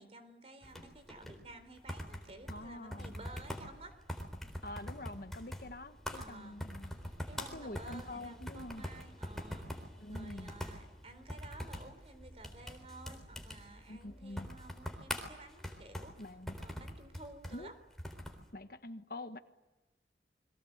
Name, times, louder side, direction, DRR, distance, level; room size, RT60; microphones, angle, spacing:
voice 1, 0.0-4.1 6.1-6.6 7.0-17.7, right 2 dB, 35° right, 9 dB, 4.0 m, -53 dB
sound 1, 0.6-18.5, equal, ahead, 3.8 m, -45 dB
voice 2, 2.5-3.1 4.6-6.9 7.4-8.8 10.0-10.5 13.9-14.5 16.2-16.6 17.5-17.7 18.5-19.4, left 1 dB, 55° left, 9 dB, 1.4 m, -46 dB
29.5 x 23.0 x 8.1 m, 1.1 s
head